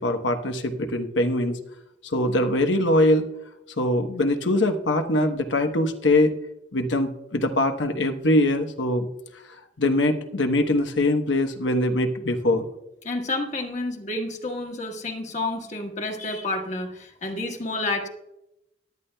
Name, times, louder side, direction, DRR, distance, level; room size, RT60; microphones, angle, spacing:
voice 1, 0.0-1.5 2.0-3.3 3.8-6.4 6.7-9.1 9.8-12.6, left 1 dB, 80° left, 6 dB, 1.1 m, -22 dB
voice 2, 13.0-18.1, left 2 dB, 40° left, 3 dB, 1.4 m, -30 dB
17.5 x 11.5 x 2.3 m, 0.90 s
head